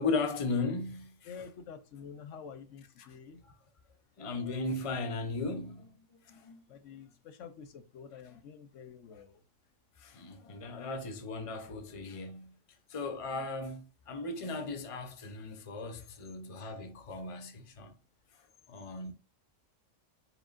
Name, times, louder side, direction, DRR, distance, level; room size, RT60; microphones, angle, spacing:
voice 1, 0.0-1.3 3.0-3.1 3.4-3.5 4.2-5.9 6.3-6.6 8.3-8.4 9.1-9.2 10.0-12.5 12.9-17.9 18.7-19.1, left 3 dB, 30° left, 0.8 m, -36 dB
voice 2, 1.2-3.4 4.4-4.6 6.7-9.4 13.3-13.5, left 6 dB, 75° left, 1.0 m, -49 dB
7.6 x 4.8 x 2.5 m
omnidirectional pair, 1.3 m